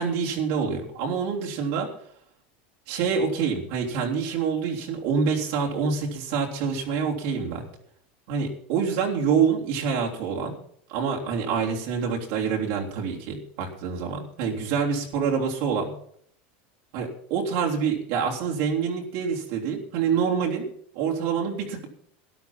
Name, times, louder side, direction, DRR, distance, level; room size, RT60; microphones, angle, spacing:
voice 1, 0.0-1.9 2.9-7.6 8.3-10.5 10.9-15.9 16.9-20.6 20.9-21.9, right 6 dB, 65° right, -1 dB, 3.4 m, -26 dB
13.0 x 11.0 x 5.9 m, 0.64 s
supercardioid pair, 125°, 6 cm